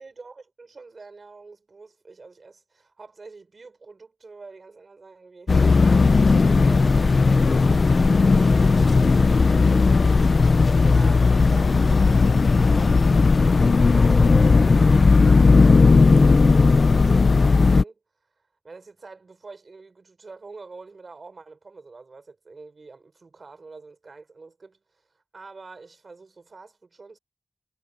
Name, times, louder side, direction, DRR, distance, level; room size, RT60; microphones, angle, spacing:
voice 1, 0.0-10.4 10.8-18.0 18.6-25.0 25.3-27.2, right 4 dB, 90° right, 4.5 m, -46 dB
sound 1, 5.5-17.8, left 4 dB, 90° left, 0.5 m, -16 dB
wide cardioid pair, 55°, 0 cm